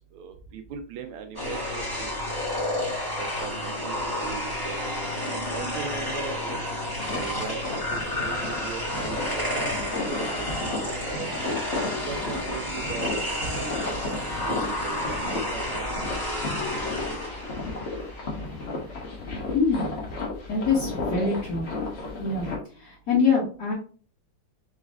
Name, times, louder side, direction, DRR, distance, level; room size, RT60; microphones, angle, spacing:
voice 1, 0.1-2.1 2.7-2.9 3.2-4.8 5.3-6.6 7.1-11.3 11.9-15.8 16.2-16.5 16.8-17.2 21.1-21.3, right 7 dB, 80° right, 6 dB, 1.4 m, -40 dB
sound 1, 1.3-18.7, left 1 dB, 10° left, 1.4 m, -31 dB
sound 2, 6.5-22.6, left 3 dB, 40° left, 1.2 m, -34 dB
voice 2, 20.5-21.7 22.2-22.5 22.7-23.7, left 4 dB, 55° left, -5 dB, 1.6 m, -24 dB
4.1 x 3.2 x 3.5 m, 0.39 s
omnidirectional pair, 2.3 m